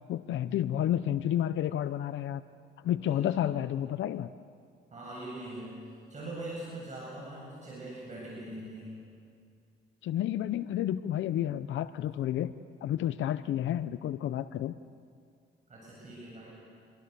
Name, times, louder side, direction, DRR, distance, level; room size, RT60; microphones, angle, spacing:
voice 1, 0.1-2.4 2.8-4.3 10.0-12.5 12.8-14.7, left 11 dB, 75° left, 12 dB, 0.7 m, -30 dB
voice 2, 2.9-3.5 4.9-5.8 6.1-8.9 15.7-16.6, right 1 dB, 35° right, -5 dB, 7.8 m, -42 dB
27.5 x 23.0 x 6.9 m, 2.3 s
cardioid pair, 90°, 20 cm